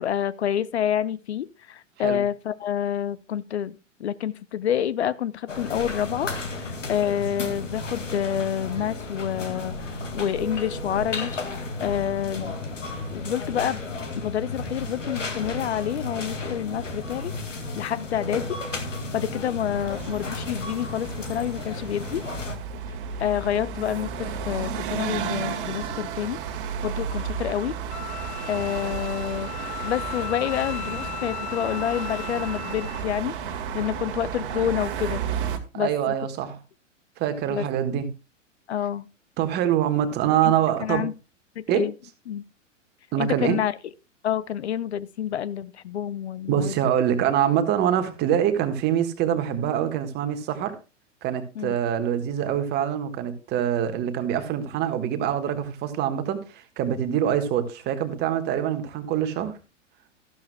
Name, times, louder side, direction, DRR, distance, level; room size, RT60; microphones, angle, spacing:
voice 1, 0.0-12.6 13.1-13.8 14.2-17.3 17.8-18.6 19.1-22.2 23.2-26.4 26.8-27.8 28.5-29.5 29.8-35.2 35.7-36.1 37.5-37.7 38.7-39.1 40.4-40.5 40.8-41.1 41.6-41.9 42.3-42.5 43.2-43.8 44.2-46.8 51.6-51.8, left 10 dB, 60° left, 0.6 m, -28 dB
sound 1, 5.5-22.6, left 2 dB, 75° left, 2.1 m, -33 dB
sound 2, 19.7-35.6, right 7 dB, 45° right, 1.6 m, -33 dB
Wind instrument woodwind instrument, 27.9-33.1, left 12 dB, 20° left, 0.8 m, -37 dB
voice 2, 35.7-36.6 37.2-38.1 39.4-41.0 41.7-41.9 43.1-43.6 46.5-50.7 51.2-59.5, right 10 dB, 25° right, 1.5 m, -24 dB
13.5 x 12.0 x 2.2 m
figure-of-eight pair, 105°, 38 cm